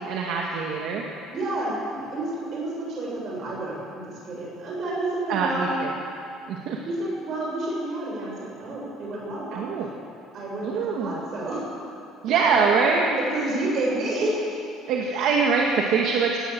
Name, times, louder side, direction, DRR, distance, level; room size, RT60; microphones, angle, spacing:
voice 1, 0.1-1.0 5.3-5.9 6.5-6.8 9.5-9.9 10.6-11.2 12.2-13.2 14.9-16.4, right 5 dB, 55° right, -1 dB, 2.0 m, -23 dB
voice 2, 1.3-5.8 6.9-9.7 10.3-11.6 12.2-12.7 13.3-14.6, right 2 dB, 35° right, -3 dB, 7.2 m, -30 dB
19.0 x 17.5 x 7.9 m, 2.5 s
cardioid pair, 175°, 0 cm